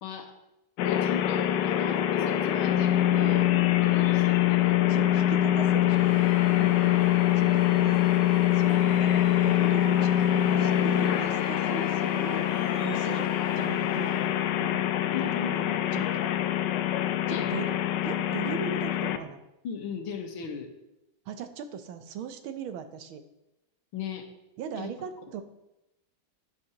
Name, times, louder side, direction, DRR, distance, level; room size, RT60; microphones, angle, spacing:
voice 1, 0.0-0.3 0.8-3.5 3.8-4.8 6.3-7.0 15.1-16.3 17.3-17.6 19.6-20.7 23.9-24.3 24.8-24.9, left 6 dB, 90° left, 4 dB, 2.1 m, -37 dB
sound 1, 0.8-19.2, left 13 dB, 75° left, 1.1 m, -24 dB
sound 2, 2.2-9.7, left 3 dB, 45° left, 1.8 m, -44 dB
voice 2, 4.9-6.2 7.4-8.1 8.5-12.5 12.8-14.9 15.2-16.0 17.3-17.8 18.0-19.4 21.3-23.2 24.6-25.4, right 7 dB, 90° right, 9 dB, 1.6 m, -39 dB
Screaming / Cheering / Crowd, 5.9-14.5, right 2 dB, 35° right, 1.9 m, -44 dB
11.5 x 9.4 x 2.9 m, 0.89 s
omnidirectional pair, 2.2 m